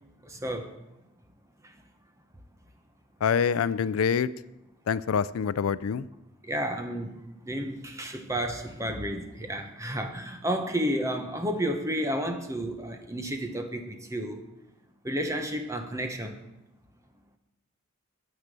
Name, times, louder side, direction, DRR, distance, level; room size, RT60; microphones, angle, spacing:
voice 1, 0.2-0.8 1.6-1.7 6.4-7.2 7.5-14.4 15.0-16.4, equal, 15° right, 6 dB, 1.0 m, -31 dB
voice 2, 3.2-4.3 4.9-6.1, left 7 dB, 80° left, 17 dB, 0.4 m, -25 dB
9.6 x 8.1 x 6.8 m, 0.94 s
head